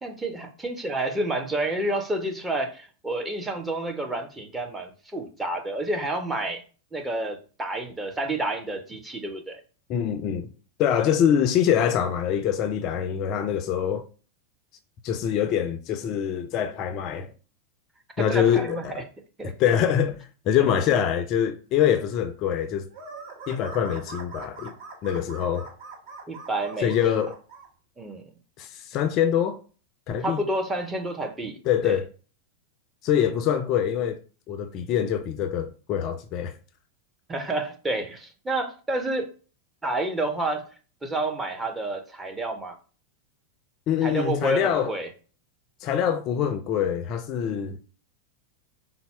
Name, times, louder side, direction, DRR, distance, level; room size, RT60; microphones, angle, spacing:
voice 1, 0.0-6.6 6.9-9.6 18.2-19.0 19.4-19.5 20.9-21.0 26.3-27.1 28.0-28.2 30.2-31.6 31.8-32.0 37.3-39.3 39.8-40.7 41.0-42.8 44.0-45.1, right 2 dB, 10° right, 0.6 m, -29 dB
voice 2, 9.9-10.5 10.8-14.0 15.0-17.3 18.2-19.0 19.4-22.9 23.5-24.7 25.0-25.7 26.8-27.4 28.6-29.6 30.1-30.4 31.7-32.1 33.0-34.2 34.5-36.6 43.9-45.0 45.8-47.8, left 9 dB, 40° left, 0.3 m, -24 dB
sound 1, 22.9-27.7, right 3 dB, 55° right, 1.0 m, -42 dB
4.0 x 2.0 x 4.4 m
figure-of-eight pair, 90°, 0 cm